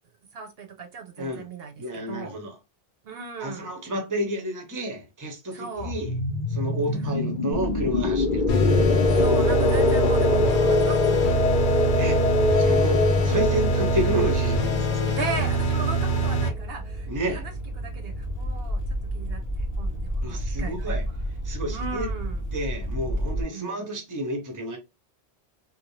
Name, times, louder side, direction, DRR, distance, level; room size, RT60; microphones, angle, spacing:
voice 1, 0.3-2.3 3.0-3.8 5.5-5.9 9.1-11.8 15.1-17.5 17.8-18.8 19.1-21.2 21.7-22.4 23.5-23.9, right 5 dB, 70° right, 0.8 m, -37 dB
voice 2, 1.8-2.5 3.4-6.1 6.5-8.6 12.0-12.2 12.6-15.2 17.1-17.4 20.2-21.0 21.4-22.1 22.5-24.8, equal, 20° right, 0.6 m, -30 dB
sound 1, 5.8-16.3, left 3 dB, 50° left, 0.7 m, -24 dB
sound 2, 7.5-23.4, right 1 dB, 30° left, 0.3 m, -32 dB
sound 3, 8.5-16.5, right 1 dB, 75° left, 0.9 m, -24 dB
2.7 x 2.2 x 2.9 m
omnidirectional pair, 1.1 m